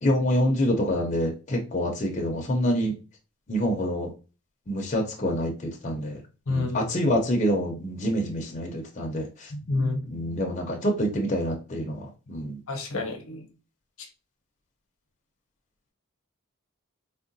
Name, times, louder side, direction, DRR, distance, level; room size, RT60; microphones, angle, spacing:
voice 1, 0.0-2.9 3.5-4.1 4.7-6.2 6.5-9.5 10.1-12.6, equal, 35° left, 1 dB, 0.5 m, -26 dB
voice 2, 6.5-6.9 9.5-10.0 12.7-13.5, left 3 dB, 75° left, 3 dB, 0.7 m, -28 dB
3.6 x 2.1 x 2.5 m, 0.32 s
head